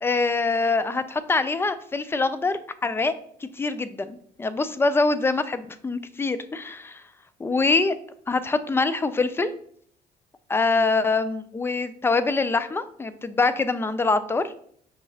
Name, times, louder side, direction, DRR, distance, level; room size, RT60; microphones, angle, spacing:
voice 1, 0.0-3.1 3.4-7.0 7.4-8.0 8.3-9.5 10.5-14.5, left 3 dB, 15° left, 13 dB, 0.3 m, -24 dB
5.9 x 2.8 x 2.7 m, 0.63 s
cardioid pair, 85°, 17 cm